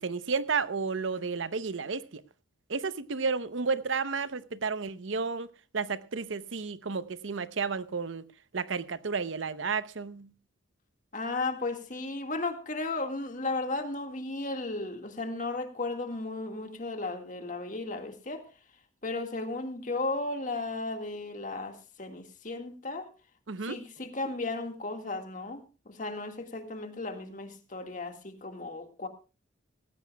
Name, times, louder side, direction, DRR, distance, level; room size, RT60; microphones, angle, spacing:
voice 1, 0.0-2.2 2.7-8.2 8.5-10.3 23.5-23.8, right 4 dB, 80° right, 0.7 m, -32 dB
voice 2, 11.1-18.5 19.0-23.1 23.6-25.6 25.9-29.1, left 2 dB, 40° left, 1.8 m, -35 dB
18.5 x 15.5 x 2.3 m
head